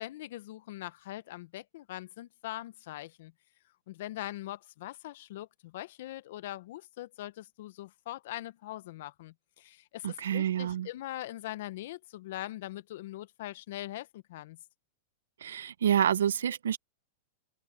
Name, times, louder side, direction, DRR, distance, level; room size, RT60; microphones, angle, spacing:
voice 1, 0.0-3.3 3.9-14.6, left 15 dB, 65° left, 1.1 m, -42 dB
voice 2, 10.0-10.9 15.4-16.8, right 9 dB, 90° right, 0.8 m, -28 dB
hypercardioid pair, 135°, 0 cm